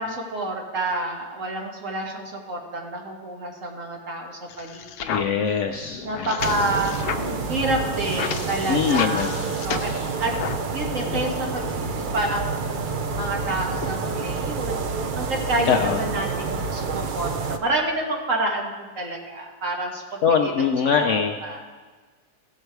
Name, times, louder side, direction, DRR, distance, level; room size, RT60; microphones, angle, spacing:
voice 1, 0.0-5.4 6.0-9.9 10.2-10.3 10.7-20.7 21.0-21.6, right 1 dB, 55° right, 1 dB, 1.8 m, -29 dB
sound 1, 4.5-10.7 11.0-13.9, left 7 dB, 80° left, 1.2 m, -34 dB
voice 2, 5.1-6.3 8.7-9.4 15.7-16.0 20.2-21.4, left 6 dB, 65° left, 4 dB, 0.8 m, -22 dB
sound 2, 6.4-17.6, right 4 dB, 85° right, 0.4 m, -28 dB
15.5 x 6.5 x 4.6 m, 1.4 s
omnidirectional pair, 1.7 m